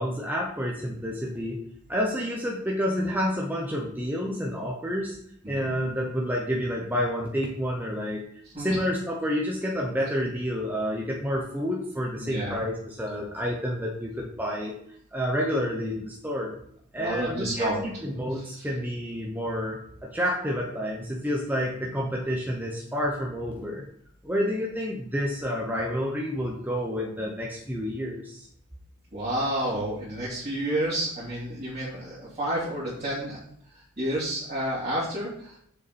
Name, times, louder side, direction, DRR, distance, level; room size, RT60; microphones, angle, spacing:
voice 1, 0.0-1.6 1.9-5.2 5.5-8.2 8.6-14.7 15.1-16.5 16.9-23.8 24.2-28.5, equal, 10° right, -2 dB, 0.8 m, -29 dB
voice 2, 12.2-12.6 17.0-17.8 18.3-18.7 29.1-33.4 33.7-35.6, right 1 dB, 30° right, -9 dB, 2.5 m, -30 dB
7.0 x 5.8 x 4.2 m, 0.68 s
head